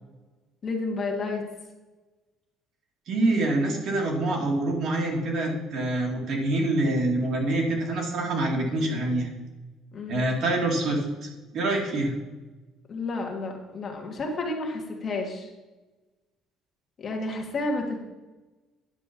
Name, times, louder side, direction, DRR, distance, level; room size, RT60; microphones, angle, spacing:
voice 1, 0.6-1.4 9.9-10.2 12.9-15.5 17.0-18.0, left 2 dB, 30° left, 1 dB, 1.7 m, -31 dB
voice 2, 3.1-9.3 10.1-12.1, right 2 dB, 50° right, 0 dB, 2.2 m, -26 dB
9.9 x 5.2 x 7.0 m, 1.1 s
cardioid pair, 160°, 0 cm